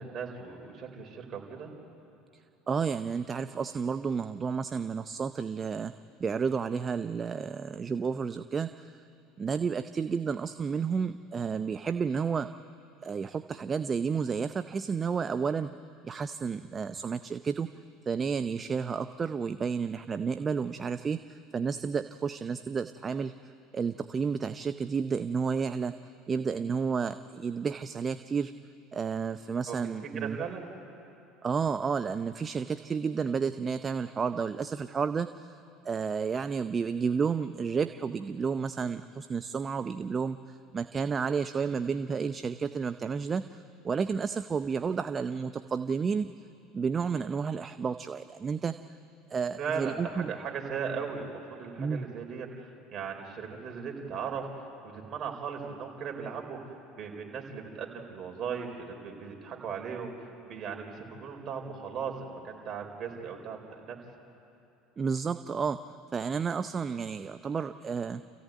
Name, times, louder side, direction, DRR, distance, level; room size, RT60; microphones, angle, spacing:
voice 1, 0.0-1.7 29.7-29.8 30.1-30.7 49.6-54.5 54.8-60.1 60.4-64.0, right 6 dB, 45° right, 2 dB, 4.5 m, -37 dB
voice 2, 2.7-5.9 6.2-9.0 9.4-12.5 13.0-15.7 16.0-17.7 18.1-25.9 26.3-28.5 28.9-30.4 31.4-35.6 35.8-46.3 46.7-48.7 49.3-50.3 51.8-52.1 65.0-65.8 66.1-68.2, right 5 dB, 30° right, 10 dB, 0.7 m, -31 dB
28.5 x 15.5 x 9.3 m, 2.7 s
hypercardioid pair, 80°, 0 cm